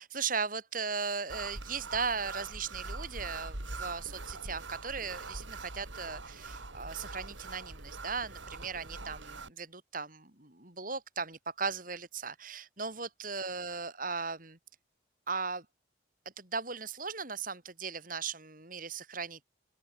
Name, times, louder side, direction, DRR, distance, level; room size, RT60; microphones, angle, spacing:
voice 1, 0.0-14.6 15.3-15.7 16.4-19.4, right 5 dB, 45° right, 5.8 m, -37 dB
sound 1, 1.3-9.5, right 3 dB, 85° right, 3.8 m, -43 dB
open air
head